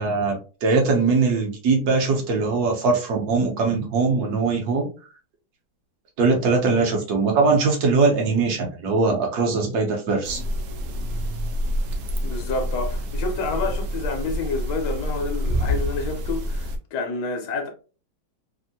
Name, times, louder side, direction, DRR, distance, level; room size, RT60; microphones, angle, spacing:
voice 1, 0.0-4.9 6.2-10.4, right 4 dB, 60° right, 1.2 m, -21 dB
sound 1, 10.2-16.8, equal, 85° right, 0.8 m, -27 dB
voice 2, 12.2-17.7, left 3 dB, 65° left, 1.2 m, -29 dB
3.5 x 2.1 x 2.6 m
omnidirectional pair, 2.1 m